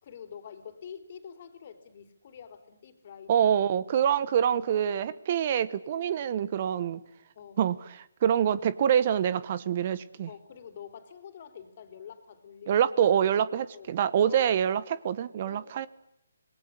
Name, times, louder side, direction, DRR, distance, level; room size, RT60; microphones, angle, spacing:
voice 1, 0.0-3.5 7.4-7.6 10.3-12.7 13.7-13.9 14.3-14.5 15.5-15.9, left 8 dB, 40° left, 10 dB, 3.8 m, -46 dB
voice 2, 3.3-7.0 7.6-10.3 12.7-15.9, right 9 dB, 40° right, 19 dB, 1.1 m, -26 dB
27.0 x 20.5 x 10.0 m, 0.77 s
hypercardioid pair, 160°, 0 cm